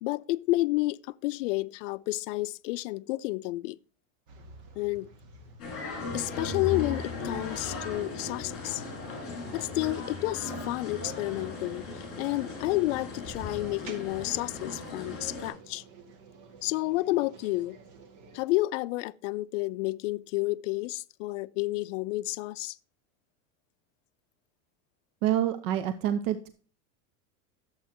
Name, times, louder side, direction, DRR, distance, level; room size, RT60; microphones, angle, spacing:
voice 1, 0.0-3.8 4.8-5.1 6.1-8.8 9.5-15.8 16.6-17.8 18.3-22.8, left 20 dB, 60° left, 0.5 m, -30 dB
sound 1, 4.3-18.4, right 4 dB, 50° right, 2.0 m, -51 dB
sound 2, 5.6-15.5, left 4 dB, 30° left, 5.0 m, -37 dB
voice 2, 25.2-26.5, right 11 dB, 65° right, 0.9 m, -27 dB
11.5 x 7.9 x 2.9 m
supercardioid pair, 155°, 42 cm